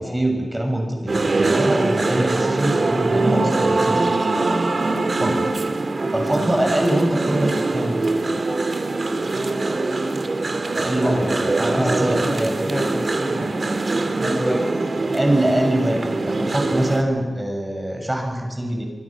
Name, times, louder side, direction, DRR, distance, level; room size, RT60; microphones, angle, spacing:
voice 1, 0.0-4.1 5.2-5.5 6.1-8.1 10.7-12.6 15.1-18.8, right 1 dB, 15° right, 2 dB, 6.5 m, -23 dB
sound 1, 1.1-17.0, right 3 dB, 55° right, 2.4 m, -22 dB
voice 2, 10.5-13.5 14.2-14.6, equal, 15° left, 1 dB, 6.0 m, -29 dB
26.0 x 24.5 x 6.2 m, 1.3 s
wide cardioid pair, 65°, 0 cm